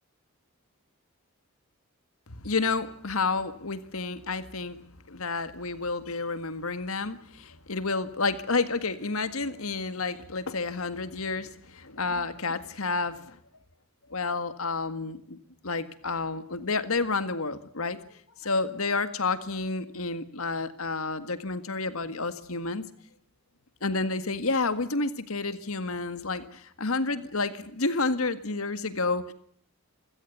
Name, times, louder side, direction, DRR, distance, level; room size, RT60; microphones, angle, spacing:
voice 1, 2.3-4.8 5.1-13.4 14.1-15.4 15.6-22.9 23.8-29.3, left 3 dB, 75° left, 12 dB, 1.8 m, -30 dB
27.5 x 16.5 x 9.4 m, 0.64 s
head